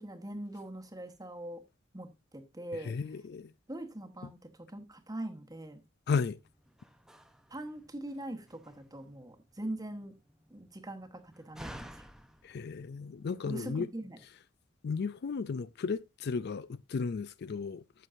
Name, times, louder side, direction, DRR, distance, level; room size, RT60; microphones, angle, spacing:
voice 1, 0.0-1.6 1.9-2.9 3.7-5.8 7.5-10.2 10.5-11.9 13.4-14.2, right 1 dB, 20° right, 1.2 m, -42 dB
voice 2, 2.7-3.5 4.2-4.3 6.1-6.4 12.4-13.9 14.8-17.8, left 5 dB, 50° left, 0.4 m, -34 dB
Slam, 6.4-13.7, equal, 5° right, 0.7 m, -54 dB
14.5 x 6.3 x 2.6 m
head